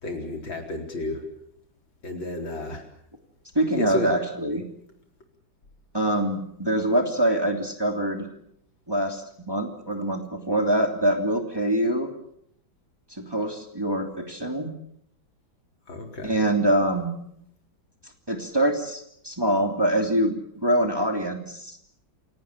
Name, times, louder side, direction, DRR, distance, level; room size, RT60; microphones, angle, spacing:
voice 1, 0.0-1.3 2.0-2.9 3.7-4.1 15.9-16.4, left 2 dB, 80° left, 4 dB, 4.9 m, -32 dB
voice 2, 3.5-4.7 5.9-8.3 8.9-12.1 13.1-14.7 16.2-17.1 18.3-21.8, right 1 dB, 10° right, 4 dB, 3.0 m, -24 dB
28.0 x 18.0 x 8.6 m, 0.73 s
omnidirectional pair, 2.1 m